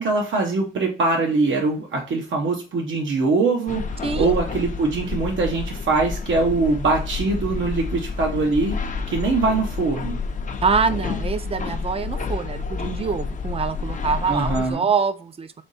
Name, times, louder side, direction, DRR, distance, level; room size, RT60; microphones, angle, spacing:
voice 1, 0.0-8.8 9.1-10.2 14.3-14.9, right 3 dB, 85° right, 1 dB, 0.8 m, -22 dB
sound 1, 3.7-14.7, left 4 dB, 40° left, 0.5 m, -29 dB
voice 2, 4.0-4.4 10.6-15.6, right 5 dB, 30° right, 11 dB, 0.4 m, -25 dB
3.6 x 3.4 x 4.0 m, 0.33 s
wide cardioid pair, 160°, 19 cm